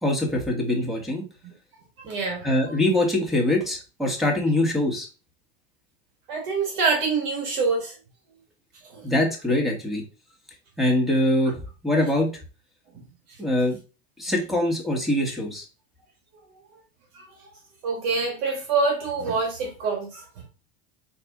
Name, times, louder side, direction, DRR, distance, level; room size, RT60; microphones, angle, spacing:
voice 1, 0.0-1.2 2.4-5.1 9.0-10.0 10.8-12.3 13.4-13.8 14.2-15.7, left 1 dB, ahead, 1.3 m, -23 dB
voice 2, 2.0-2.5 6.3-7.9 8.9-9.1 12.9-13.4 17.1-17.5 17.8-20.3, right 4 dB, 60° right, 1.4 m, -26 dB
4.1 x 2.6 x 3.5 m
supercardioid pair, 125°, 35 cm